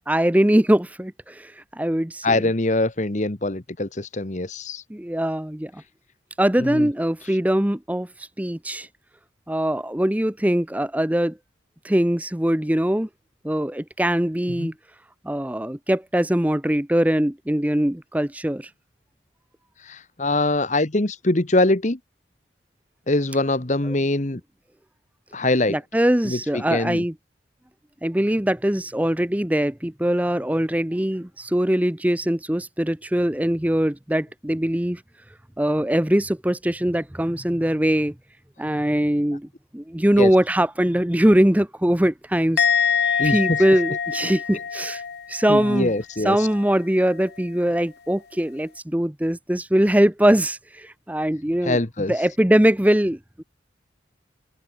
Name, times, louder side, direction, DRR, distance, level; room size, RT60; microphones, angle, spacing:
voice 1, 0.1-2.4 4.9-5.8 6.4-8.9 9.5-11.4 11.8-13.1 13.4-14.7 15.2-18.7 25.7-27.1 28.0-35.0 35.6-38.1 38.6-39.5 39.7-45.0 45.3-45.9 46.2-51.8 52.1-53.4, right 1 dB, 10° right, 0.6 m, -22 dB
voice 2, 2.2-4.8 6.6-6.9 14.6-14.7 19.9-22.0 23.1-24.4 25.3-25.8 26.2-27.0 40.2-40.3 43.2-43.6 45.5-46.4 51.6-52.1, left 2 dB, 40° left, 1.2 m, -23 dB
Musical instrument, 42.6-46.0 46.2-46.7, left 7 dB, 55° left, 0.5 m, -25 dB
open air
head